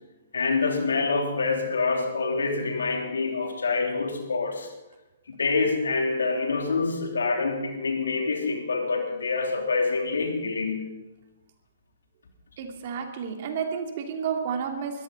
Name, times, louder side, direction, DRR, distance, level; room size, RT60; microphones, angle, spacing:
voice 1, 0.3-4.7 5.3-11.0, left 4 dB, 80° left, 2 dB, 3.4 m, -26 dB
voice 2, 12.6-15.0, right 6 dB, 50° right, 3 dB, 2.7 m, -31 dB
22.0 x 14.5 x 4.2 m, 1.0 s
hypercardioid pair, 130°, 0 cm